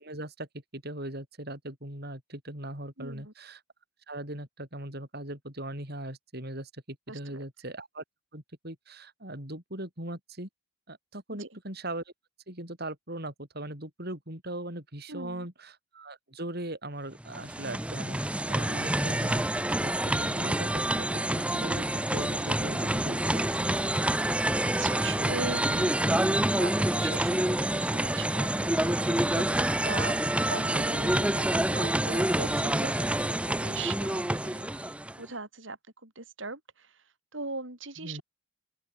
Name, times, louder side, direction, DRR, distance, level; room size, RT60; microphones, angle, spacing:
voice 1, 0.0-3.6 4.1-8.0 8.3-10.5 10.9-12.0 12.5-18.2 18.5-19.4 19.8-21.9 22.1-23.8 38.0-38.2, right 1 dB, 50° right, 6.2 m, -39 dB
voice 2, 3.0-3.3 7.1-7.5 11.3-11.6 15.1-15.5 18.7-19.1 24.6-29.5 29.8-38.2, right 3 dB, 65° right, 5.3 m, -40 dB
sound 1, 17.2-35.2, right 1 dB, 5° right, 0.8 m, -27 dB
open air
head